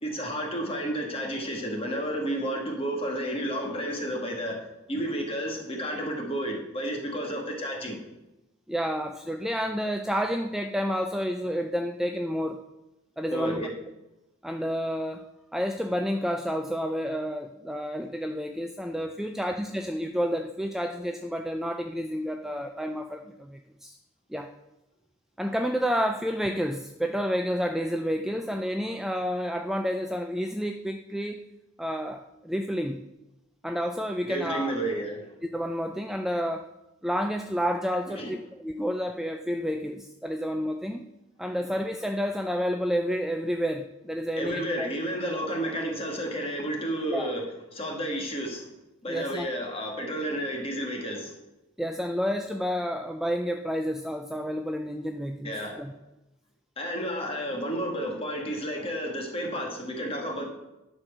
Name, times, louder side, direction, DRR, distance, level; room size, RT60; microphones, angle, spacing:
voice 1, 0.0-4.6 4.9-8.0 13.3-13.7 34.2-35.3 38.2-38.3 44.4-47.4 47.7-48.7 49.0-51.4 55.4-55.8 56.8-60.5, equal, 30° left, 1 dB, 1.8 m, -31 dB
voice 2, 8.7-12.6 13.2-13.6 14.4-24.0 24.3-24.5 25.4-31.4 31.8-33.0 33.6-34.7 35.5-36.7 37.0-41.1 41.4-44.9 47.1-47.3 49.1-49.5 51.8-55.9, equal, ahead, 5 dB, 0.3 m, -30 dB
11.0 x 4.5 x 6.6 m, 0.96 s
head